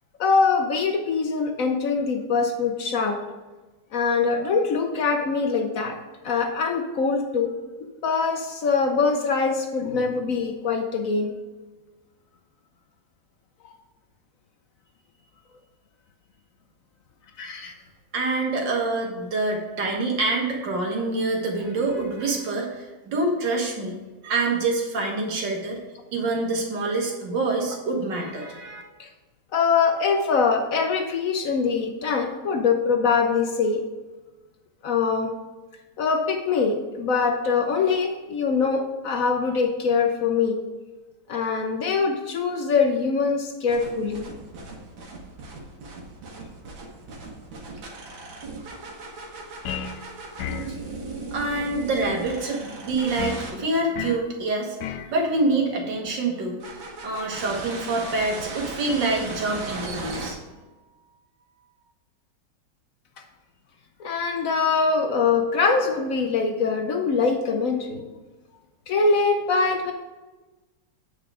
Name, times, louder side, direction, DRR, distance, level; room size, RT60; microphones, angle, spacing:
voice 1, 0.2-3.2 3.9-6.0 6.2-7.5 8.0-11.3 13.6-13.7 17.4-17.7 29.0-29.1 29.5-33.8 34.8-35.3 36.0-40.6 41.3-44.3 51.5-51.6 64.0-68.1 68.9-69.9, left 5 dB, 65° left, 4 dB, 0.9 m, -23 dB
voice 2, 18.1-24.0 24.2-25.8 26.1-28.8 51.3-56.6 57.0-60.4, right 2 dB, 70° right, 0 dB, 2.1 m, -26 dB
sound 1, 43.7-53.5 56.6-60.3, right 3 dB, 85° right, 2.1 m, -37 dB
sound 2, 49.6-50.0 50.4-50.8 53.2-53.5 53.9-54.3 54.8-55.1, left 9 dB, 85° left, 1.4 m, -32 dB
8.8 x 4.8 x 4.9 m, 1.2 s
omnidirectional pair, 2.1 m